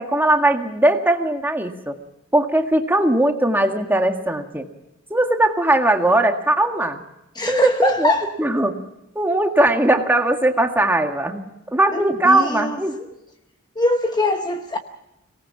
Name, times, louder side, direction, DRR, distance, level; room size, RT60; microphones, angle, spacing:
voice 1, 0.0-2.0 2.3-4.7 5.1-7.0 7.5-8.8 9.2-13.1, right 1 dB, 10° right, 1.8 m, -19 dB
voice 2, 7.3-8.3 11.9-12.8 13.8-14.8, left 2 dB, 20° left, 1.0 m, -22 dB
24.5 x 19.0 x 5.8 m
head